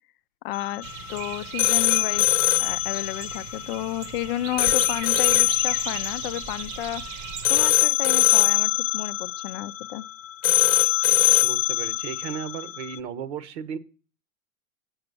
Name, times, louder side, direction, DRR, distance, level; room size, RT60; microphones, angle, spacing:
voice 1, 0.4-7.0 7.5-10.0, left 14 dB, 50° left, 0.4 m, -32 dB
sound 1, 0.5-13.0, left 16 dB, 80° left, 0.8 m, -23 dB
sound 2, 0.8-7.7, right 7 dB, 35° right, 0.9 m, -37 dB
voice 2, 11.4-13.8, right 8 dB, 60° right, 1.0 m, -34 dB
7.9 x 5.8 x 6.8 m
hypercardioid pair, 130°, 41 cm